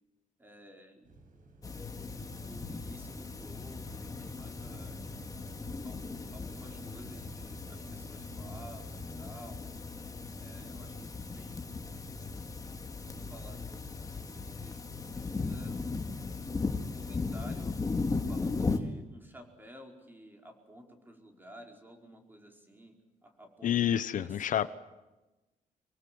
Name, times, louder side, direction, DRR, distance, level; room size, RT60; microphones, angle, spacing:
voice 1, 0.4-1.2 2.0-5.0 5.8-6.1 6.3-9.7 10.4-12.0 13.1-16.1 16.8-17.8 18.3-22.9 23.2-24.7, equal, 15° right, 3 dB, 5.0 m, -53 dB
sound 1, 1.0-8.6, right 2 dB, 70° right, 6.8 m, -57 dB
sound 2, 1.6-18.8, left 3 dB, 25° left, 2.1 m, -37 dB
voice 2, 23.6-24.7, left 10 dB, 65° left, 14 dB, 1.0 m, -28 dB
24.5 x 23.5 x 7.9 m, 1.1 s
cardioid pair, 130°, 14 cm